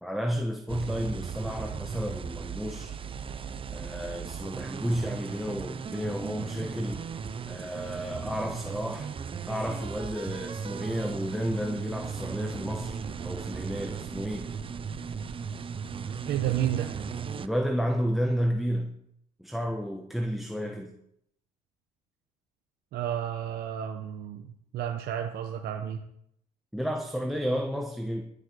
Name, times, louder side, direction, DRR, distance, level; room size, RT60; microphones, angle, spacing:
voice 1, 0.0-3.0 3.7-7.1 7.5-9.1 9.5-14.5 17.4-19.0 19.4-20.9 26.7-28.2, equal, ahead, 1.2 m, -32 dB
sound 1, 0.7-17.5, right 6 dB, 30° right, 0.7 m, -36 dB
voice 2, 16.3-16.9 22.9-26.0, right 10 dB, 70° right, 1.0 m, -31 dB
12.0 x 8.2 x 6.3 m
cardioid pair, 110°, 17 cm